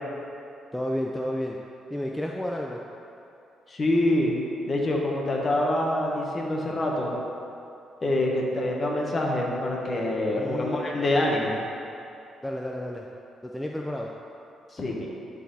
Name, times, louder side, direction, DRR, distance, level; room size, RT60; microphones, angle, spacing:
voice 1, 0.7-1.6 1.9-2.8 10.4-10.9 12.4-13.1 13.4-14.1, left 1 dB, 5° left, -1 dB, 0.5 m, -31 dB
voice 2, 3.7-4.3 4.7-7.1 8.0-11.6 14.7-15.1, left 1 dB, 35° left, -1 dB, 1.3 m, -25 dB
11.0 x 4.1 x 4.2 m, 2.8 s
cardioid pair, 90°, 0 cm